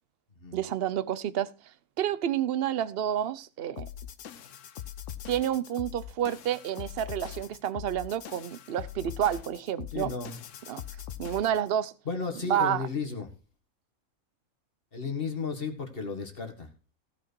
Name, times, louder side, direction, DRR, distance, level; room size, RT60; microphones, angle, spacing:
voice 1, 0.5-3.9 5.3-10.1 10.7-10.8 11.2-11.9 12.4-12.9, right 10 dB, 50° right, 0.8 m, -29 dB
sound 1, 3.8-11.7, left 10 dB, 65° left, 1.1 m, -42 dB
voice 2, 9.9-10.4 12.1-13.3 14.9-16.7, left 5 dB, 40° left, 2.1 m, -34 dB
16.0 x 6.2 x 4.6 m
omnidirectional pair, 1.5 m